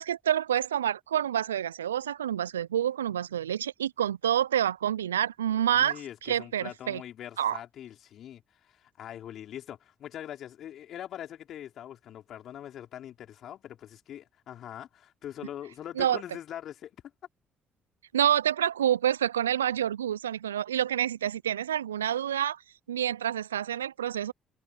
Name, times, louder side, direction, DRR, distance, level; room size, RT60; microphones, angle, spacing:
voice 1, 0.0-7.0 7.4-7.6 16.0-16.2 18.1-22.6 22.9-24.3, right 10 dB, 90° right, 0.4 m, -28 dB
voice 2, 5.7-16.9 20.0-20.1, left 11 dB, 60° left, 4.8 m, -43 dB
hypercardioid pair, 45°, 0 cm